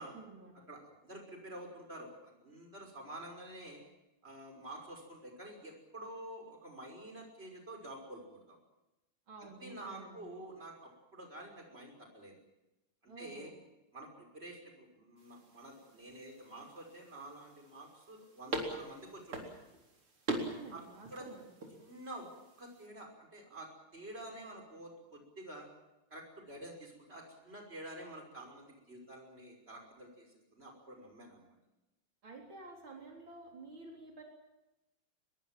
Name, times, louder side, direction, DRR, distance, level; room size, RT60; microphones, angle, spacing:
voice 1, 0.0-0.7 9.3-10.2 13.1-13.5 20.3-21.4 32.2-34.2, right 3 dB, 65° right, 1 dB, 4.6 m, -51 dB
voice 2, 0.7-3.8 4.2-8.6 9.6-12.4 13.0-13.5 13.9-19.5 20.7-20.8 21.1-21.3 21.8-22.3 22.6-25.7 26.1-31.5, right 1 dB, 25° right, 2 dB, 6.0 m, -49 dB
sound 1, 15.2-22.9, right 2 dB, 85° right, 4.9 m, -44 dB
23.5 x 22.0 x 7.6 m, 0.96 s
omnidirectional pair, 2.3 m